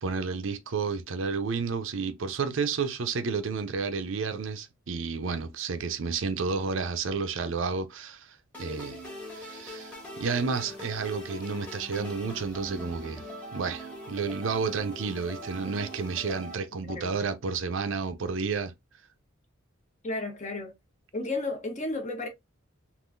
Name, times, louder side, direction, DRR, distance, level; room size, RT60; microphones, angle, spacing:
voice 1, 0.0-9.0 9.3-13.2 13.5-18.7, right 5 dB, 65° right, 0.5 m, -31 dB
sound 1, 8.5-16.5, equal, 5° left, 1.2 m, -42 dB
voice 2, 16.8-17.1 20.0-20.7 21.1-22.3, left 2 dB, 35° left, 0.9 m, -33 dB
3.6 x 2.5 x 2.5 m
head